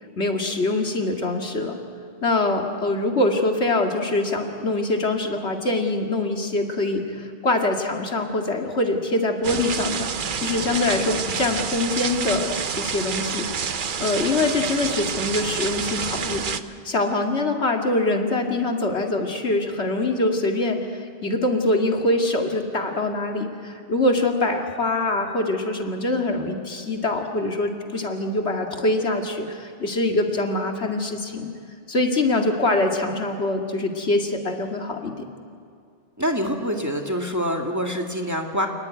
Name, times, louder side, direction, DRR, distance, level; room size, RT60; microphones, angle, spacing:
voice 1, 0.2-1.8 2.2-10.1 10.4-12.5 12.8-16.5 16.8-31.5 31.9-35.3, left 2 dB, 75° left, 2 dB, 2.5 m, -24 dB
sound 1, 9.4-16.6, right 6 dB, 50° right, 0.9 m, -28 dB
voice 2, 36.2-38.7, equal, 15° right, 2 dB, 2.1 m, -25 dB
28.0 x 19.5 x 9.5 m, 2.2 s
omnidirectional pair, 1.1 m